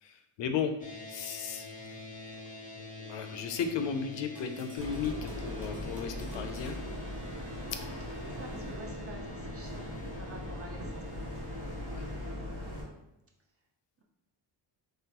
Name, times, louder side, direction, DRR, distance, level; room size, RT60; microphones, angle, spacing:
voice 1, 0.0-0.7 1.1-1.7 2.7-6.8 7.9-8.2 11.9-12.0, left 7 dB, 65° left, 7 dB, 0.5 m, -35 dB
sound 1, 0.8-12.3, left 2 dB, 15° left, 0.5 m, -46 dB
sound 2, 4.4-7.8, right 1 dB, 5° right, 1.1 m, -49 dB
sound 3, 4.8-12.8, left 1 dB, 50° right, 1.3 m, -40 dB
voice 2, 8.2-11.5, right 2 dB, 30° right, 0 dB, 0.6 m, -47 dB
3.7 x 3.1 x 2.9 m, 0.89 s
cardioid pair, 125°, 48 cm